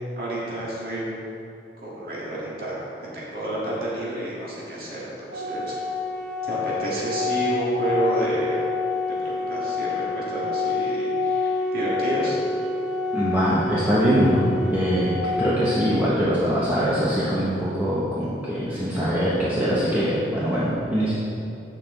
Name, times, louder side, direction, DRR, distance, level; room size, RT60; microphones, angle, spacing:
voice 1, 0.1-1.1 1.8-5.7 6.4-8.6 9.1-12.5, right 1 dB, 55° right, -6 dB, 1.9 m, -30 dB
Organ, 5.3-16.3, left 3 dB, 85° right, 1.4 m, -27 dB
voice 2, 13.1-15.1 15.4-21.1, equal, 10° right, -9 dB, 0.9 m, -22 dB
8.3 x 6.7 x 3.8 m, 2.7 s
head